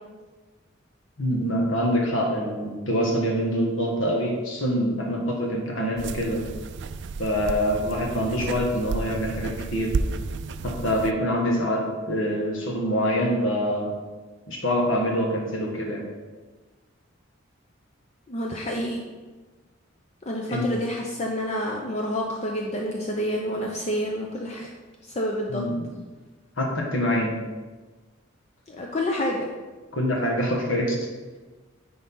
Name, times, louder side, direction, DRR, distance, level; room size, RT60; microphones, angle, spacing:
voice 1, 1.2-6.5 7.2-10.0 10.6-14.0 14.5-16.1 20.5-20.7 25.5-25.9 26.6-27.4 29.9-31.1, equal, 75° left, 0 dB, 1.5 m, -25 dB
sound 1, 6.0-11.1, right 4 dB, 60° right, 0.3 m, -32 dB
voice 2, 18.3-19.0 20.3-24.7 25.1-25.6 28.7-29.5, equal, 35° left, -1 dB, 0.6 m, -28 dB
9.8 x 3.9 x 3.8 m, 1.3 s
head